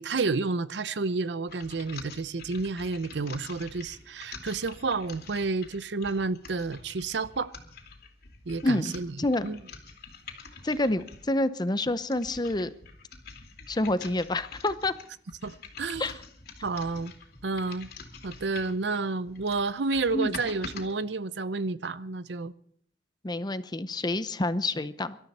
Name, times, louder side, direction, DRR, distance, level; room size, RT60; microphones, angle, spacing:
voice 1, 0.0-7.5 8.5-9.1 9.4-9.6 15.4-16.1 16.6-17.1 17.4-17.9 18.2-22.5, right 3 dB, 70° right, 0.7 m, -30 dB
sound 1, 1.5-11.3 11.9-18.8 19.3-20.9, left 4 dB, 60° left, 2.7 m, -46 dB
voice 2, 10.6-12.7 13.7-14.9 16.0-16.2 20.1-20.4 23.2-25.2, left 2 dB, 25° left, 0.7 m, -28 dB
24.5 x 12.5 x 4.2 m
head